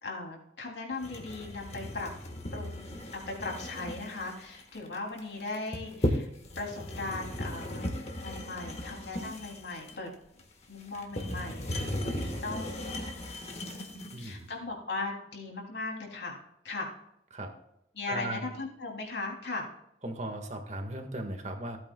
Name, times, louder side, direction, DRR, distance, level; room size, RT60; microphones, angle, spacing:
voice 1, 0.0-2.1 2.5-6.3 6.5-7.9 8.2-10.1 10.7-12.9 14.2-16.4 16.6-16.9 17.9-19.7, left 3 dB, 75° left, 0 dB, 3.0 m, -38 dB
sound 1, 1.0-14.3, left 1 dB, 40° left, 1.5 m, -36 dB
voice 2, 14.1-14.5 17.3-17.5 18.1-18.5 20.0-21.8, right 1 dB, 40° right, 4 dB, 1.7 m, -37 dB
16.0 x 8.6 x 2.3 m, 0.79 s
head